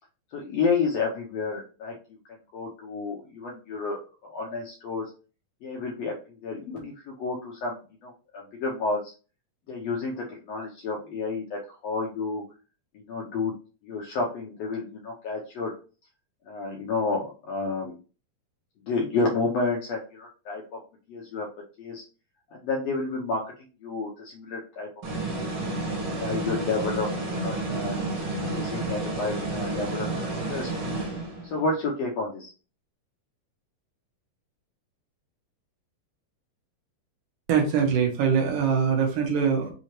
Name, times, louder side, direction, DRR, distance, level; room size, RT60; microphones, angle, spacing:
voice 1, 0.3-1.9 2.5-4.0 4.3-5.1 5.6-9.1 9.7-12.4 12.9-13.5 13.8-15.7 16.5-17.9 18.9-20.8 21.1-21.5 21.8-22.0 22.5-23.4 23.8-24.9 25.2-25.3 26.2-28.0 28.5-30.7 31.4-32.5, left 3 dB, 70° left, -1 dB, 1.6 m, -30 dB
sound 1, 25.0-31.6, right 2 dB, 50° right, 2.0 m, -30 dB
voice 2, 37.5-39.7, right 6 dB, 80° right, 2 dB, 2.6 m, -23 dB
6.2 x 2.8 x 3.0 m, 0.35 s
omnidirectional pair, 3.9 m